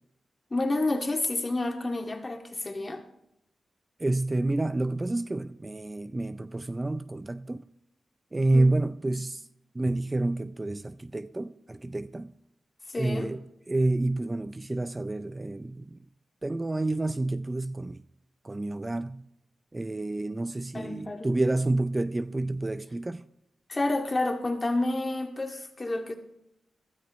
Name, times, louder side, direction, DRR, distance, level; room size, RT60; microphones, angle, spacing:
voice 1, 0.5-3.0 8.5-8.7 12.9-13.3 20.7-21.3 23.7-26.1, left 2 dB, 30° left, 2.2 m, -29 dB
voice 2, 4.0-7.6 8.3-9.5 9.7-12.3 13.0-16.0 16.4-18.0 18.4-19.2 19.7-23.3, right 2 dB, 25° right, 0.5 m, -29 dB
15.5 x 13.0 x 3.1 m
cardioid pair, 65°, 0 cm